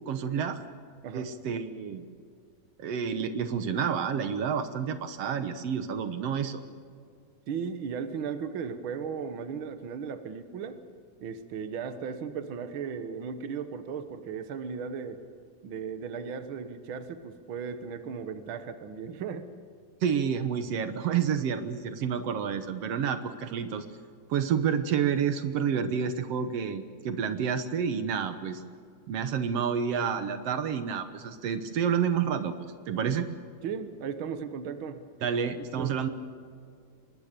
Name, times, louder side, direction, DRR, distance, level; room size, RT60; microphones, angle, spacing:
voice 1, 0.1-0.6 1.1-2.0 2.8-6.6 20.0-23.8 24.3-28.6 29.1-32.5 32.9-33.3 35.2-36.1, right 7 dB, 65° right, 9 dB, 1.5 m, -29 dB
voice 2, 7.5-10.8 11.2-15.2 15.6-19.5 33.6-35.3 35.6-35.9, right 6 dB, 90° right, 10 dB, 1.1 m, -36 dB
24.5 x 21.0 x 6.8 m, 2.3 s
omnidirectional pair, 4.3 m